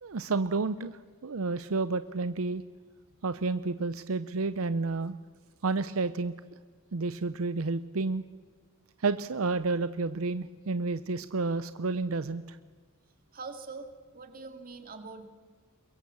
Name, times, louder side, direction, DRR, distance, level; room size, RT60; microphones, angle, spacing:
voice 1, 0.0-2.6 3.2-5.2 5.6-6.3 6.9-8.2 9.0-12.6, right 3 dB, 90° right, 13 dB, 0.7 m, -30 dB
voice 2, 13.3-15.2, right 4 dB, 45° right, 6 dB, 2.4 m, -43 dB
22.5 x 22.5 x 7.1 m, 1.5 s
head